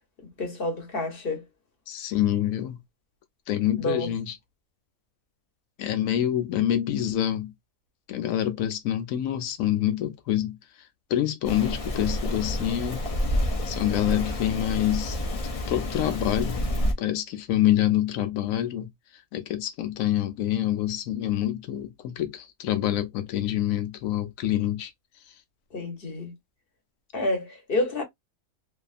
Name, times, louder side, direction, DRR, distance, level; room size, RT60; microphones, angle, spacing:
voice 1, 0.2-1.4 3.8-4.1 25.7-26.3 27.1-28.0, left 2 dB, 45° left, 1.0 m, -29 dB
voice 2, 1.9-2.8 3.5-4.4 5.8-7.5 8.1-10.6 11.1-13.0 13.6-15.4 15.7-16.6 17.0-18.9 19.3-24.9, left 12 dB, 80° left, 1.0 m, -26 dB
Rain, 11.4-16.9, left 1 dB, 60° left, 0.3 m, -29 dB
2.7 x 2.3 x 2.4 m
omnidirectional pair, 1.4 m